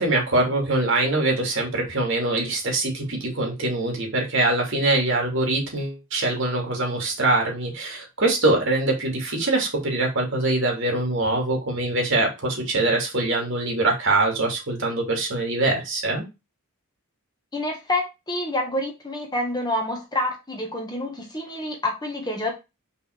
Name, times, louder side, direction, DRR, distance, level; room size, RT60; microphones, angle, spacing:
voice 1, 0.0-16.2, right 2 dB, 60° right, 1 dB, 2.6 m, -23 dB
voice 2, 17.5-22.5, left 1 dB, 20° left, 1 dB, 1.6 m, -28 dB
5.7 x 4.1 x 4.5 m, 0.25 s
head